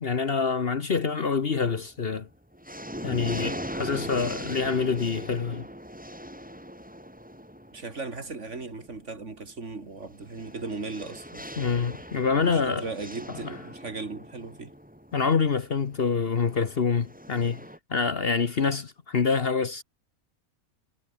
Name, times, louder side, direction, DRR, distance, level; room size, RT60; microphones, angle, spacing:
voice 1, 0.0-2.3 3.0-5.7 11.6-12.9 15.1-17.6 17.9-19.8, left 5 dB, 45° left, 1.2 m, -26 dB
sound 1, 1.4-2.0 2.3-17.8, equal, 5° right, 7.5 m, -40 dB
voice 2, 7.7-11.5 12.3-14.7, right 3 dB, 55° right, 3.0 m, -37 dB
omnidirectional pair, 1.5 m